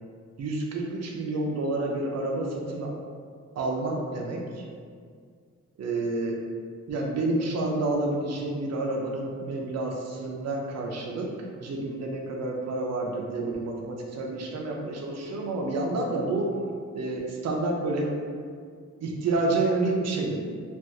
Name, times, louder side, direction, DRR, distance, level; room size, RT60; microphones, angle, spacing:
voice 1, 0.4-2.9 3.6-4.6 5.8-6.4 6.9-16.5 16.9-18.1 19.0-20.4, right 2 dB, 60° right, 0 dB, 0.5 m, -29 dB
3.3 x 2.4 x 2.6 m, 2.1 s
wide cardioid pair, 125°, 30 cm